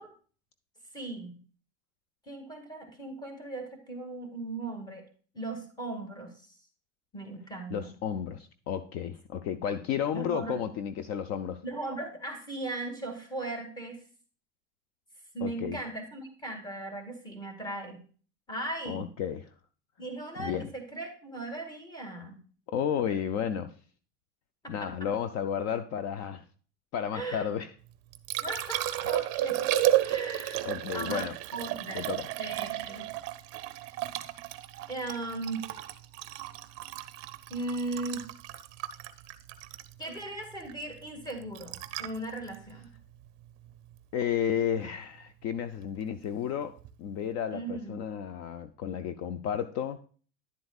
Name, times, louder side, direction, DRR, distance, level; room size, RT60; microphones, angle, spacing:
voice 1, 0.9-1.4 2.3-5.0 5.3-6.3 7.1-7.9 10.1-10.6 11.6-14.0 15.3-18.0 18.5-19.1 20.0-22.4 24.6-24.9 27.1-27.5 28.4-32.0 32.4-33.1 33.8-33.9 34.9-35.6 37.5-38.2 40.0-42.9 47.5-48.0, right 2 dB, 10° left, 1.8 m, -38 dB
voice 2, 7.7-11.6 15.4-15.8 18.9-19.5 20.4-20.7 22.7-23.7 24.7-26.4 26.9-27.7 30.6-31.4 31.9-32.3 44.1-50.1, left 8 dB, 40° left, 0.5 m, -32 dB
Liquid, 27.9-44.0 46.8-46.9, right 14 dB, 40° right, 0.6 m, -33 dB
10.5 x 7.8 x 2.4 m
supercardioid pair, 130°, 37 cm